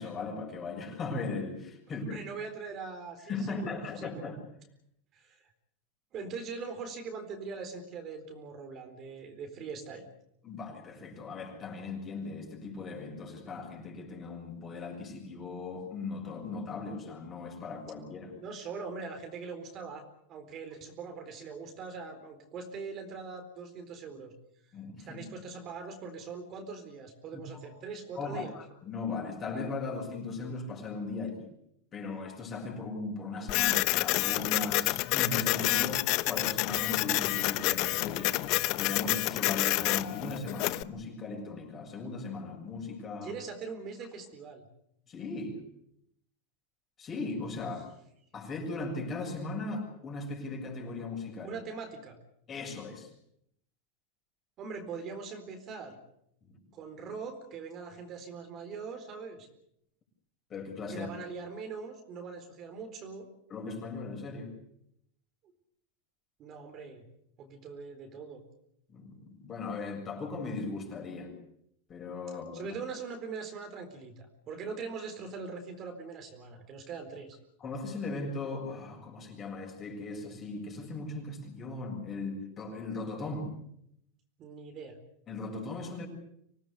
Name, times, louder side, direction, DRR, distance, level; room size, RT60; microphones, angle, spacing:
voice 1, 0.0-2.2 3.3-4.4 10.4-18.4 24.7-25.2 27.3-27.6 28.1-31.5 31.9-38.4 38.8-43.3 45.1-45.6 47.0-47.9 48.3-51.6 52.5-53.1 56.4-56.6 60.5-61.1 63.5-64.5 68.9-71.4 71.9-72.7 77.6-83.6 85.3-86.1, left 3 dB, 25° left, 2 dB, 7.3 m, -38 dB
voice 2, 2.1-4.3 5.1-5.4 6.1-10.1 18.4-24.3 25.1-28.5 43.2-44.6 51.4-52.2 54.6-56.0 56.7-59.5 60.9-63.3 66.4-67.0 67.4-68.4 72.5-77.4 84.4-85.0, right 5 dB, 35° right, 6 dB, 4.2 m, -42 dB
Printer, 33.5-40.8, left 19 dB, 50° left, 0.9 m, -28 dB
25.5 x 18.0 x 8.4 m, 0.75 s
supercardioid pair, 135°, 0 cm